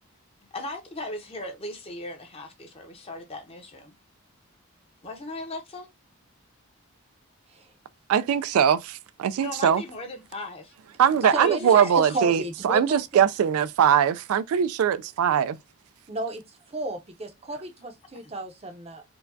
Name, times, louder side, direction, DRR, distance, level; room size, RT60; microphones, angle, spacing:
voice 1, 0.5-3.9 5.0-5.9 9.4-10.7 11.2-12.1 18.2-18.3, left 2 dB, 25° left, 0.7 m, -37 dB
voice 2, 8.1-9.8 11.0-15.6, right 8 dB, 80° right, 0.3 m, -21 dB
voice 3, 11.3-11.8 12.1-13.2 16.1-19.0, right 2 dB, 25° right, 0.6 m, -33 dB
4.5 x 2.2 x 2.6 m
head